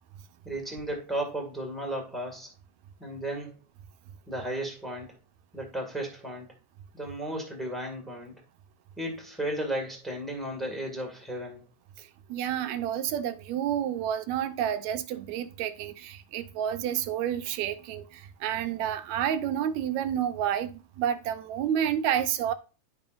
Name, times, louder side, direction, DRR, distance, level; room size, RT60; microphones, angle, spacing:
voice 1, 0.4-2.5 3.0-3.5 4.3-5.1 5.5-6.5 6.9-8.4 9.0-11.6, right 1 dB, ahead, 1.2 m, -34 dB
voice 2, 12.0-22.5, right 10 dB, 80° right, 2.0 m, -30 dB
11.0 x 5.5 x 2.5 m
omnidirectional pair, 3.4 m